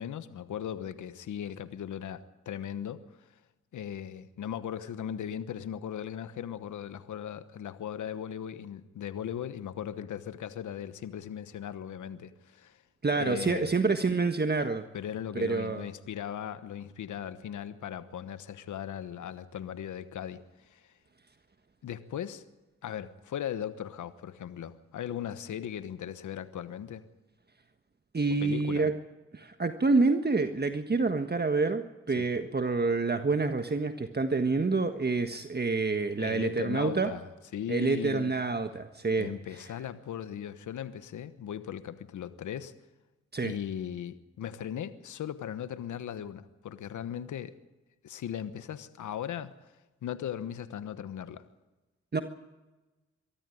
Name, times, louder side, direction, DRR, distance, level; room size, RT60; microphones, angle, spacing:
voice 1, 0.0-3.3 3.7-12.8 13.2-13.7 14.9-20.9 21.8-22.4 22.8-27.1 28.4-28.9 32.2-32.3 36.2-37.3 37.5-38.3 39.2-42.7 43.4-47.6 48.0-49.7 50.0-51.4, left 9 dB, 80° left, 13 dB, 1.2 m, -38 dB
voice 2, 13.0-14.9 15.3-15.8 28.1-28.9 29.3-37.1 37.7-39.3 43.3-43.5 52.1-52.2, right 3 dB, 35° right, 7 dB, 1.5 m, -27 dB
23.5 x 13.5 x 9.4 m, 1.1 s
supercardioid pair, 45°, 30 cm